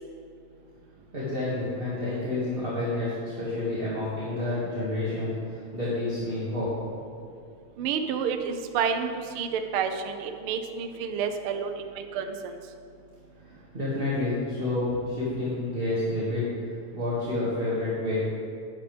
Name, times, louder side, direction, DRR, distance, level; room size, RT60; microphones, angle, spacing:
voice 1, 1.1-6.8 13.4-18.2, left 2 dB, 25° right, -10 dB, 1.7 m, -29 dB
voice 2, 7.8-12.6, right 6 dB, 80° right, 6 dB, 1.2 m, -30 dB
12.0 x 10.0 x 3.4 m, 2.4 s
omnidirectional pair, 3.3 m